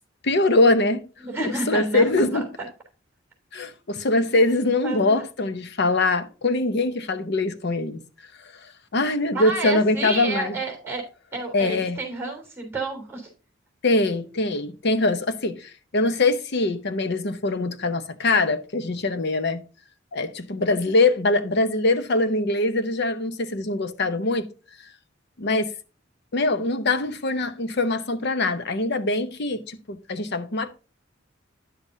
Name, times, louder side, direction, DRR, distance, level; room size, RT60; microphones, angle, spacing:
voice 1, 0.2-1.1 1.4-2.5 3.5-8.0 8.9-10.6 11.5-12.0 13.8-19.6 20.1-24.5 25.4-25.7 26.3-30.7, left 2 dB, 60° left, 0.8 m, -23 dB
voice 2, 1.2-2.1 2.3-2.4 4.8-5.2 9.3-11.0 11.3-13.3, right 3 dB, 15° right, 3.3 m, -30 dB
10.5 x 7.3 x 2.7 m
head